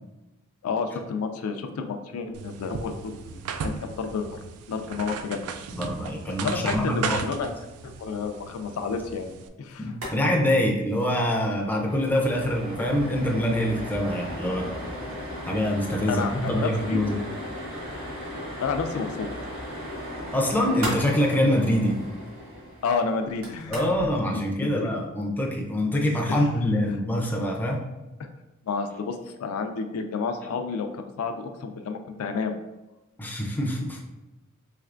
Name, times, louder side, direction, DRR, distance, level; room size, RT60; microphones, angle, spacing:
voice 1, 0.6-4.4 4.7-5.4 6.3-7.5 7.8-9.3 9.6-9.9 16.1-17.0 18.6-19.3 22.8-23.8 24.8-24.9 26.3-26.4 28.7-32.5, left 5 dB, 75° left, 6 dB, 0.3 m, -30 dB
sound 1, 2.3-9.5, right 6 dB, 85° right, 0.3 m, -36 dB
voice 2, 5.7-7.3 9.8-14.7 15.5-17.1 20.3-22.0 23.7-27.9 33.2-34.0, left 1 dB, 10° left, -1 dB, 0.4 m, -25 dB
sound 2, 9.9-10.2 10.4-10.5 10.8-11.0 11.4-24.1, equal, 70° right, 1.2 m, -36 dB
3.3 x 3.1 x 2.4 m, 1.0 s
head